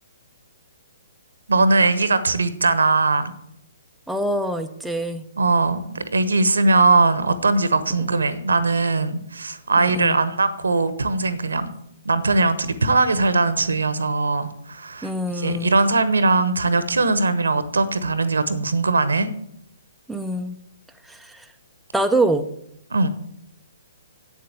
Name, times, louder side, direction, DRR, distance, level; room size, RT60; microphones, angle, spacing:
voice 1, 1.5-3.3 5.4-11.7 12.0-19.3 22.9-23.1, right 3 dB, 70° right, 13 dB, 1.0 m, -20 dB
voice 2, 4.1-5.3 9.8-10.2 15.0-15.7 20.1-20.6 21.0-21.5 21.9-22.5, right 1 dB, ahead, 4 dB, 0.6 m, -24 dB
8.5 x 7.5 x 8.0 m, 0.73 s
figure-of-eight pair, 125°, 0 cm